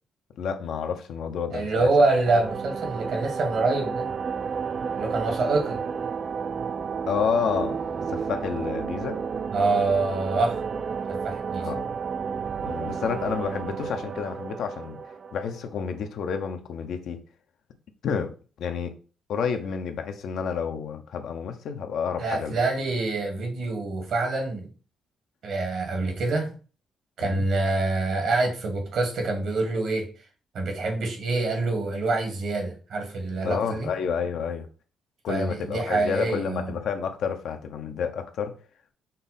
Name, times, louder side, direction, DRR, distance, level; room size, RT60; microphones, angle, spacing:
voice 1, 0.4-1.9 7.1-7.8 8.1-9.2 11.6-11.9 12.6-15.0 15.3-17.2 18.0-18.9 19.3-22.6 27.2-27.4 33.4-34.7 35.2-38.6, left 6 dB, 70° left, 0.6 m, -30 dB
voice 2, 1.5-4.1 5.0-5.8 9.5-10.6 11.1-11.7 22.2-24.7 25.4-26.5 27.2-30.1 30.5-33.9 35.3-36.7, right 3 dB, 65° right, 1.6 m, -26 dB
sound 1, 2.3-15.8, right 6 dB, 45° right, 0.3 m, -31 dB
5.3 x 2.1 x 4.1 m
cardioid pair, 90°, 0 cm